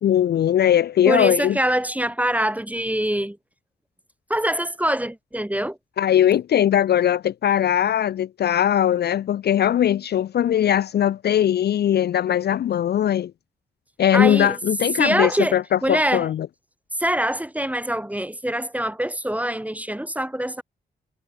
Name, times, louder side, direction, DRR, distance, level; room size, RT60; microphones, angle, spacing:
voice 1, 0.0-1.6 6.0-13.3 14.0-16.5, left 10 dB, 60° left, 0.4 m, -20 dB
voice 2, 1.0-3.4 4.3-5.8 14.1-14.6 15.0-16.3 17.0-20.6, right 1 dB, 5° right, 1.2 m, -24 dB
supercardioid pair, 40°, 20 cm